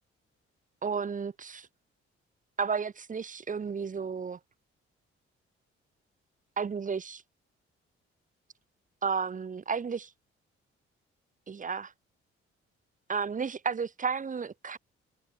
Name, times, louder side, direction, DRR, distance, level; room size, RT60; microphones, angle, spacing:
voice 1, 0.8-1.7 2.6-4.4 6.6-7.2 9.0-10.1 11.5-11.9 13.1-14.8, right 6 dB, 25° right, 0.5 m, -32 dB
hypercardioid pair, 40°, 31 cm